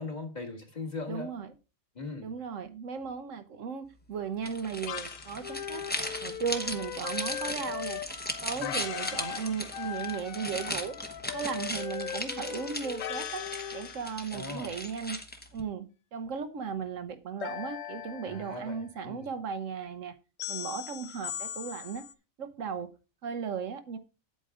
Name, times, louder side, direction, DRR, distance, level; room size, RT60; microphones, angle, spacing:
voice 1, 0.0-1.3 2.0-2.3 8.5-8.8 14.3-14.7 18.3-19.3, left 3 dB, 30° left, 1.8 m, -39 dB
voice 2, 1.1-1.5 2.2-5.8 6.2-8.0 8.4-10.9 11.3-13.4 13.7-15.2 15.5-15.9 16.1-20.1 20.5-22.0 22.4-22.9 23.2-24.0, right 6 dB, 70° right, 1.1 m, -36 dB
sound 1, 4.4-15.6, left 1 dB, 10° left, 0.9 m, -38 dB
sound 2, 4.9-5.4 8.6-10.3 13.0-14.4 17.4-18.9 20.4-22.1, left 11 dB, 65° left, 0.8 m, -40 dB
Wind instrument woodwind instrument, 5.4-9.5 9.7-13.9, left 10 dB, 80° left, 1.1 m, -40 dB
8.4 x 8.4 x 3.6 m
omnidirectional pair, 1.4 m